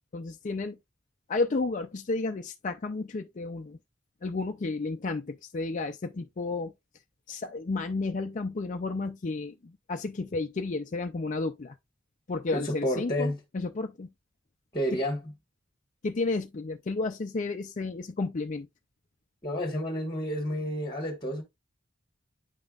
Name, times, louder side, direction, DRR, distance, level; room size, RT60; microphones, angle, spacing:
voice 1, 0.1-0.8 1.3-3.8 4.2-6.7 7.3-11.8 12.3-14.1 14.9-15.0 16.0-18.7, left 3 dB, 40° left, 0.4 m, -32 dB
voice 2, 12.5-13.4 14.7-15.2 19.4-21.4, equal, 20° left, 1.3 m, -30 dB
8.9 x 5.3 x 2.4 m
head